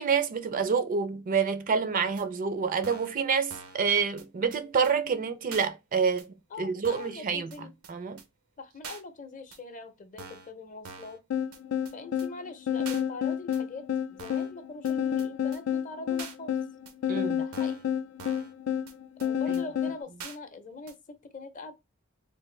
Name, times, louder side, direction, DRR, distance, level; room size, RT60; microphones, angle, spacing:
voice 1, 0.0-6.3 6.6-7.5 7.9-8.2 17.1-17.4, right 6 dB, 40° right, 0.4 m, -27 dB
sound 1, 2.2-2.3 2.8-3.2 3.5-3.8 4.2-4.3 4.5-4.6 4.8-4.9 5.5-5.7 6.2-6.3 6.8-7.2 7.5-7.6 7.8-7.9 8.2-8.3 8.8-9.0 9.5-9.6 10.2-10.5 10.8-11.2 11.5-11.6 11.9-12.0 12.2-12.3 12.9-13.0 13.5-13.6 14.2-14.5 14.9-15.0 15.2-15.3 15.5-15.6 16.2-16.4 16.9-17.0 17.5-17.9 18.2-18.5 18.9-19.0 19.2-19.3 19.5-19.6 20.2-20.4 20.9-21.0, right 5 dB, 90° right, 0.7 m, -44 dB
voice 2, 6.5-7.7 8.6-11.2 11.9-13.8 14.1-16.6 17.3-17.9 19.2-21.7, left 3 dB, 40° left, 0.6 m, -43 dB
sound 2, 11.3-20.0, left 9 dB, 80° left, 0.3 m, -30 dB
3.3 x 2.4 x 3.1 m
head